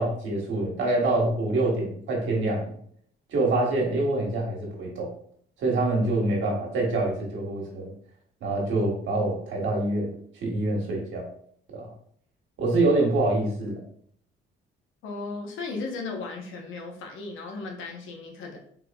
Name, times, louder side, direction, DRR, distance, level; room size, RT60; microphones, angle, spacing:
voice 1, 0.0-2.7 3.3-5.1 5.6-7.9 8.4-10.1 10.4-11.2 11.7-11.9 12.6-13.8, right 2 dB, 75° right, -1 dB, 1.2 m, -25 dB
voice 2, 15.0-18.6, left 3 dB, 80° left, 2 dB, 0.8 m, -36 dB
3.7 x 3.0 x 2.3 m, 0.63 s
cardioid pair, 90°, 20 cm